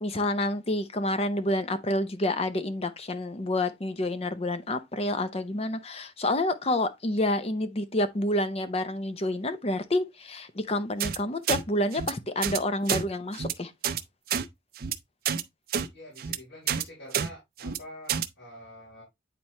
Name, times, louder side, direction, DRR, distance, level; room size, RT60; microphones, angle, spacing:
voice 1, 0.0-13.7, left 1 dB, 35° left, 0.7 m, -28 dB
sound 1, 11.0-11.2 11.5-11.6 11.9-12.1 12.4-12.6 12.9-13.0 13.3-13.5 13.8-14.0 14.3-14.4 14.8-14.9 15.2-15.4 15.7-15.9 16.2-16.4 16.7-16.8 17.1-17.3 17.6-17.8 18.1-18.3, right 8 dB, 50° right, 0.6 m, -28 dB
voice 2, 15.9-19.0, left 1 dB, 80° left, 3.8 m, -46 dB
8.9 x 4.2 x 3.1 m
head